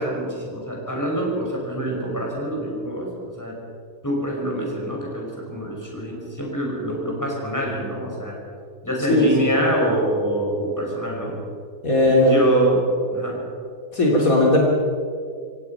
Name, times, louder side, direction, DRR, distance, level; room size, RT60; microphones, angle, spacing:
voice 1, 0.0-3.1 3.4-3.6 4.0-8.4 8.8-11.4 12.1-13.4, right 1 dB, 10° left, -2 dB, 5.9 m, -25 dB
voice 2, 9.1-9.5 11.8-12.4 13.9-14.6, left 1 dB, 55° left, -3 dB, 3.5 m, -17 dB
27.5 x 17.0 x 5.9 m, 2.2 s
omnidirectional pair, 1.7 m